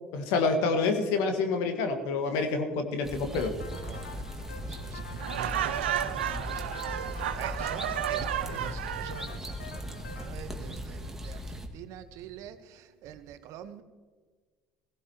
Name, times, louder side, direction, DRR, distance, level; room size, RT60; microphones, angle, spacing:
voice 1, 0.1-3.5, left 4 dB, 65° left, 5 dB, 1.7 m, -27 dB
sound 1, 3.0-11.7, equal, 5° right, 2.0 m, -39 dB
sound 2, 3.4-10.3, left 6 dB, 85° left, 1.1 m, -48 dB
voice 2, 3.8-4.2 4.6-13.8, right 8 dB, 60° right, 10 dB, 1.1 m, -45 dB
Laughter, 5.2-9.3, right 11 dB, 80° right, 0.6 m, -32 dB
17.5 x 17.0 x 3.0 m, 1.4 s
hypercardioid pair, 60°, 6 cm